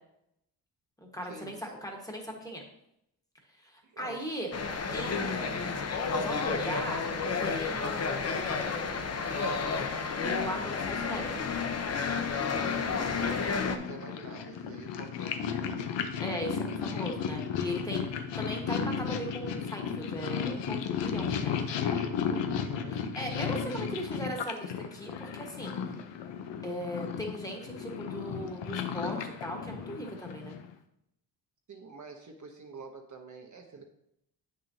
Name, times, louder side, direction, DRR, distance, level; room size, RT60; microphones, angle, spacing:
voice 1, 1.1-2.6 3.6-4.5 4.9-5.8 6.2-7.1 7.4-8.8 10.2-11.4 16.2-21.6 23.1-25.8 26.6-30.6, equal, 10° left, 1 dB, 1.3 m, -38 dB
voice 2, 3.8-4.4 12.4-15.9 21.8-23.1 31.7-33.9, right 3 dB, 45° right, 3 dB, 0.9 m, -47 dB
sound 1, 4.5-13.8, left 5 dB, 35° left, 0.7 m, -31 dB
Purr, 13.1-30.7, left 7 dB, 85° left, 0.8 m, -34 dB
8.5 x 6.4 x 2.7 m, 0.78 s
cardioid pair, 115°, 42 cm